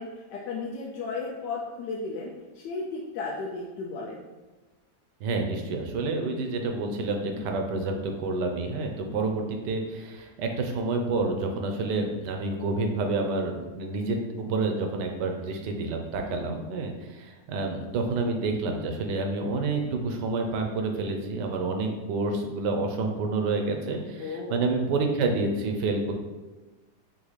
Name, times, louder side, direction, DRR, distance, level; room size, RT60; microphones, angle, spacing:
voice 1, 0.0-4.2 7.4-7.5 9.1-9.3 16.2-16.4 24.2-24.6, left 3 dB, 90° left, -2 dB, 1.2 m, -35 dB
voice 2, 5.2-26.1, right 3 dB, 85° right, 4 dB, 1.3 m, -29 dB
3.9 x 3.7 x 3.2 m, 1.2 s
omnidirectional pair, 1.8 m